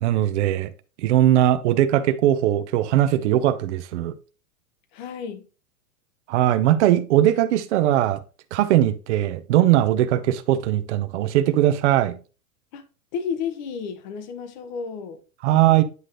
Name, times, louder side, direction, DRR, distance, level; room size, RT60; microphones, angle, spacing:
voice 1, 0.0-0.7 1.0-4.1 6.3-8.2 8.5-12.2 15.4-15.8, right 12 dB, 50° right, 0.8 m, -20 dB
voice 2, 4.9-5.4 12.7-12.8 13.1-15.2, left 6 dB, 30° left, 0.8 m, -31 dB
9.5 x 3.3 x 3.9 m
supercardioid pair, 175°, 44 cm